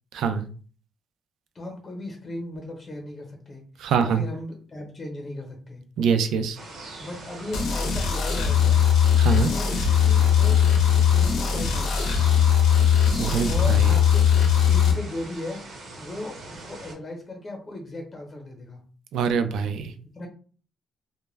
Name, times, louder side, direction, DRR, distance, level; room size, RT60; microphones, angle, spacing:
voice 1, 0.1-0.5 3.8-4.2 6.0-6.6 9.2-9.5 13.2-13.9 19.1-19.9, right 6 dB, 85° right, 9 dB, 0.3 m, -24 dB
voice 2, 1.5-3.6 4.0-5.9 7.0-8.8 9.4-12.3 13.5-18.9 20.1-20.3, left 1 dB, 30° left, 2 dB, 0.8 m, -37 dB
sound 1, 6.5-16.9, right 2 dB, 70° right, 0.8 m, -41 dB
sound 2, 7.5-14.9, left 8 dB, 85° left, 0.7 m, -20 dB
2.2 x 2.1 x 3.2 m, 0.40 s
cardioid pair, 140°, 0 cm